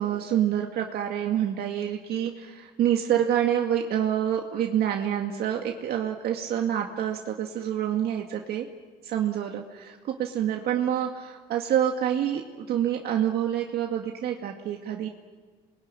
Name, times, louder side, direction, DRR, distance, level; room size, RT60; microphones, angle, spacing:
voice 1, 0.0-8.7 9.0-15.1, right 10 dB, 70° right, 2 dB, 2.2 m, -27 dB
27.5 x 21.5 x 9.9 m, 1.4 s
cardioid pair, 110°, 17 cm